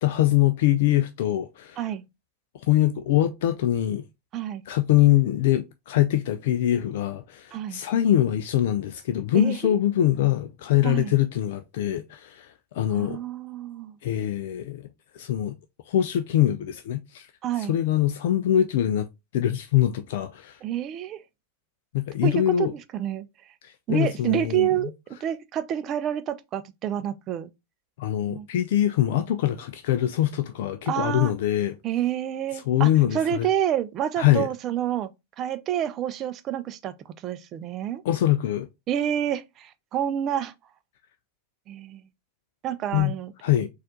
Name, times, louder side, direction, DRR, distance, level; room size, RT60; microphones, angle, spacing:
voice 1, 0.0-1.8 2.7-4.0 4.7-12.5 12.7-13.2 14.0-14.9 15.1-15.6 15.9-17.3 17.6-19.1 19.3-20.6 21.9-22.7 23.6-24.7 28.0-31.7 32.7-33.5 34.2-34.5 38.0-38.7 42.9-43.1 43.4-43.7, left 12 dB, 55° left, 0.4 m, -23 dB
voice 2, 7.5-7.8 9.3-9.8 10.8-11.1 12.9-14.0 17.4-17.7 20.6-21.2 22.2-23.3 23.9-27.5 28.3-28.5 30.9-31.3 31.8-35.1 35.4-36.9 37.2-38.0 38.9-40.5 41.7-42.0 42.6-43.3, right 10 dB, 35° right, 0.4 m, -28 dB
4.2 x 2.4 x 4.0 m
figure-of-eight pair, 90°, 0 cm